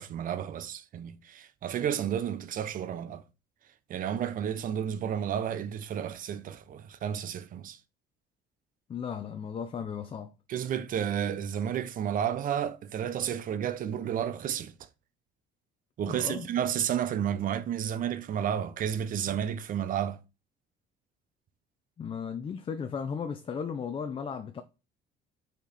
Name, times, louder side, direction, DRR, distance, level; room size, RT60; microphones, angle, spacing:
voice 1, 0.0-3.2 3.9-7.8 10.5-14.7 16.0-20.2, right 9 dB, 45° right, 0.7 m, -31 dB
voice 2, 8.9-10.3 16.1-16.5 22.0-24.6, left 6 dB, 25° left, 0.5 m, -35 dB
5.7 x 4.4 x 4.1 m
cardioid pair, 140°, 20 cm